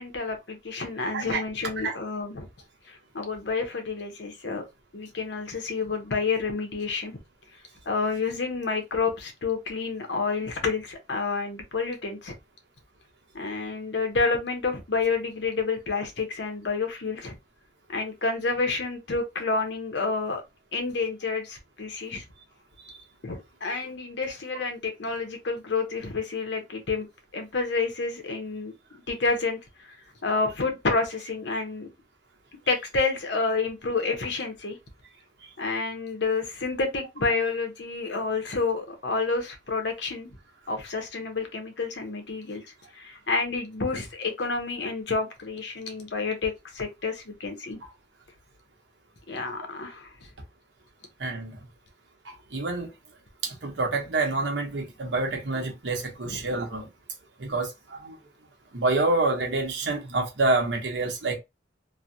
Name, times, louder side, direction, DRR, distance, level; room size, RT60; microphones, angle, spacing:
voice 1, 0.0-2.5 2.9-4.6 4.9-7.2 7.9-12.3 13.3-17.4 17.9-20.4 20.7-22.2 23.2-27.1 27.3-28.7 29.1-29.6 30.2-31.9 32.7-34.8 35.6-40.3 40.7-42.6 42.9-47.8 49.3-50.3 56.2-56.4, left 4 dB, 75° left, 0.9 m, -29 dB
voice 2, 51.2-51.6 52.2-52.9 53.4-56.9 57.4-58.2 58.7-61.4, right 3 dB, 85° right, 1.0 m, -27 dB
3.1 x 2.2 x 2.6 m
head